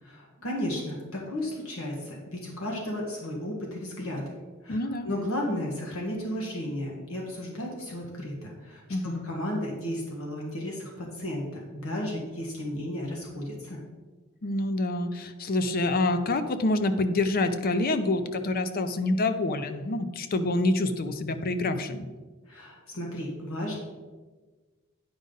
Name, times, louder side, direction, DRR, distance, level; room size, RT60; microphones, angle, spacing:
voice 1, 0.0-13.8 22.5-23.8, left 1 dB, 80° left, -1 dB, 1.4 m, -34 dB
voice 2, 4.7-5.1 8.9-9.3 14.4-22.1, left 2 dB, 45° left, 9 dB, 0.6 m, -27 dB
9.6 x 5.3 x 3.9 m, 1.3 s
head